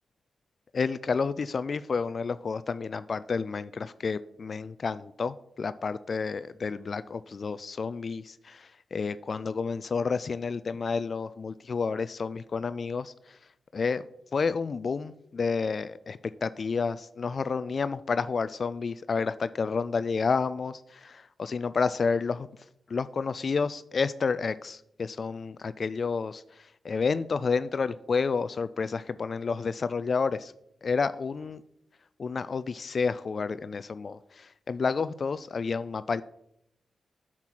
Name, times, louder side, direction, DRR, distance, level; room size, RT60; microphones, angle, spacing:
voice 1, 0.7-13.1 13.7-14.0 14.3-22.5 22.9-26.4 26.8-30.5 30.8-31.6 32.2-36.2, left 5 dB, 55° left, 0.3 m, -30 dB
7.6 x 7.4 x 4.6 m
cardioid pair, 60°, 0 cm